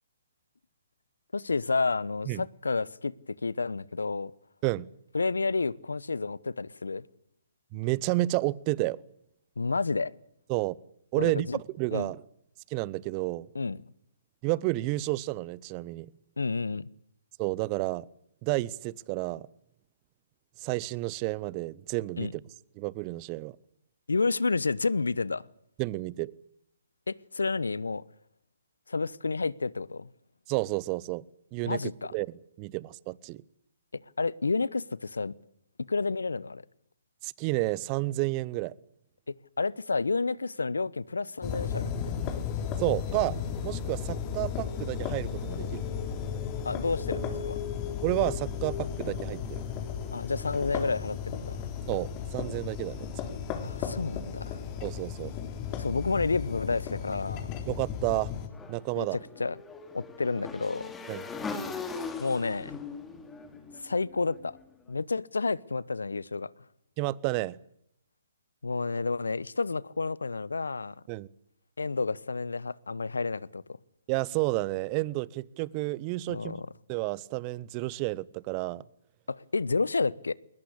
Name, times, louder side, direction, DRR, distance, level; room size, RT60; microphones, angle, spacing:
voice 1, 1.3-4.3 5.1-7.0 9.6-10.1 11.2-11.6 11.9-12.1 13.5-13.8 16.4-16.9 22.2-22.3 24.1-25.4 27.1-28.0 28.9-30.1 31.7-32.1 33.9-35.3 35.9-36.6 39.6-41.9 46.6-47.6 50.1-51.6 53.6-54.6 55.8-57.5 59.0-59.6 59.9-60.9 62.2-62.7 63.8-64.5 64.9-66.5 68.6-71.0 71.8-73.6 76.3-76.7 79.3-80.3, left 4 dB, 80° left, 0.9 m, -30 dB
voice 2, 7.7-9.0 10.5-10.7 11.1-12.2 12.7-13.5 14.4-16.1 17.4-18.1 18.4-19.5 20.6-22.4 22.8-23.6 25.8-26.3 30.5-31.2 31.5-33.4 37.2-38.7 42.8-43.4 43.6-45.8 48.0-49.6 51.9-53.1 54.8-55.3 57.7-58.3 58.7-59.2 61.1-61.2 67.0-67.6 71.1-71.3 74.1-76.6 76.9-78.8, right 20 dB, 30° right, 0.8 m, -31 dB
sound 1, 41.4-58.5, left 7 dB, 30° left, 3.9 m, -34 dB
Motorcycle / Engine, 58.5-64.6, left 4 dB, 10° left, 2.9 m, -40 dB
21.5 x 19.5 x 8.5 m
figure-of-eight pair, 135°, 0 cm